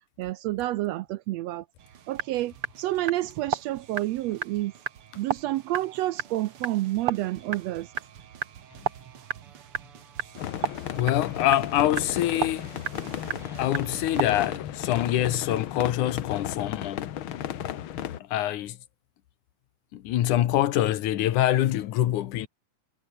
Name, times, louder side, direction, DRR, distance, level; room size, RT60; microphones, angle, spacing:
voice 1, 0.2-1.6 2.1-4.7 5.2-7.9, right 16 dB, 80° right, 1.6 m, -29 dB
sound 1, 1.8-14.6, right 9 dB, 55° right, 2.3 m, -36 dB
sound 2, 10.4-18.2, left 11 dB, 60° left, 1.5 m, -34 dB
voice 2, 10.9-12.7 13.5-17.1 18.3-18.8 19.9-22.5, left 13 dB, 90° left, 2.7 m, -25 dB
omnidirectional pair, 3.4 m